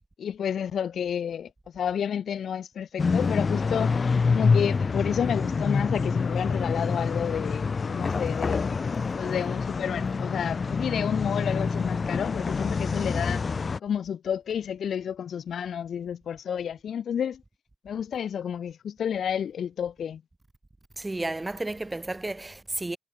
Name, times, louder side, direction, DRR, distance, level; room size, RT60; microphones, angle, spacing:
voice 1, 0.2-3.9 4.3-8.7 9.2-13.4 13.8-17.4 17.8-20.2, left 8 dB, 60° left, 2.4 m, -30 dB
sound 1, 3.0-13.8, left 4 dB, 35° left, 4.1 m, -26 dB
voice 2, 21.0-23.0, right 2 dB, 15° right, 4.7 m, -32 dB
cardioid pair, 90°, 0 cm